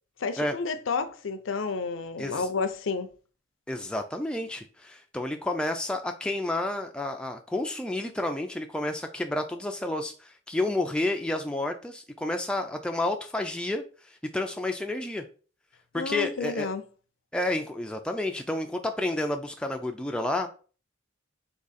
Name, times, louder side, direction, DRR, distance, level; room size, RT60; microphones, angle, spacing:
voice 1, 0.2-3.1 15.9-16.8, left 4 dB, 70° left, 0.5 m, -30 dB
voice 2, 3.7-13.8 14.3-15.2 15.9-16.7 17.3-20.5, left 1 dB, 5° left, 0.3 m, -30 dB
3.7 x 2.9 x 4.1 m
head